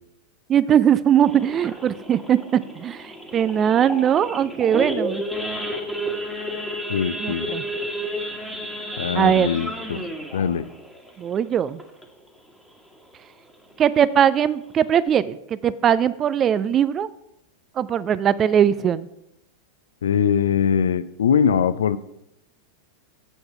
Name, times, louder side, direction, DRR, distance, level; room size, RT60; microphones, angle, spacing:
voice 1, 0.5-5.2 7.2-7.6 9.1-9.5 11.2-11.8 13.8-15.4 15.6-17.1 17.8-19.1, right 9 dB, 25° right, 16 dB, 0.4 m, -20 dB
Idling / Accelerating revving vroom / Sawing, 1.2-12.3 12.7-12.9 13.1-13.2 13.7-14.0 14.4-14.5 14.7-15.1, equal, ahead, 1.5 m, -32 dB
voice 2, 6.9-7.5 9.0-10.0 10.3-10.7 20.0-22.0, left 7 dB, 65° left, 15 dB, 0.5 m, -22 dB
7.8 x 7.1 x 5.6 m, 0.81 s
figure-of-eight pair, 90°, 0 cm